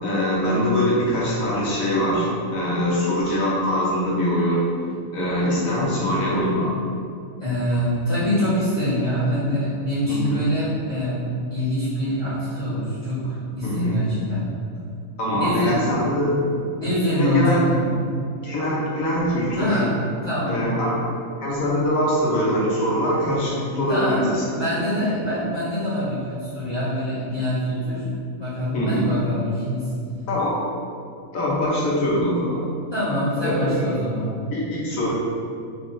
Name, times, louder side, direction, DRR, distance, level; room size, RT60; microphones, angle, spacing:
voice 1, 0.0-4.6 5.1-6.7 10.1-10.5 13.6-14.0 15.2-16.5 17.1-17.6 18.4-19.8 20.5-20.9 21.4-24.4 28.7-29.0 30.3-30.6 31.3-32.6 33.4-33.9 34.5-35.1, equal, 80° left, -6 dB, 1.4 m, -23 dB
voice 2, 7.4-14.4 15.3-15.9 16.7-18.0 19.6-20.0 20.2-20.7 23.9-28.1 28.4-29.9 32.9-34.3, equal, 30° left, -17 dB, 1.5 m, -24 dB
4.7 x 3.7 x 2.6 m, 2.4 s
omnidirectional pair, 1.4 m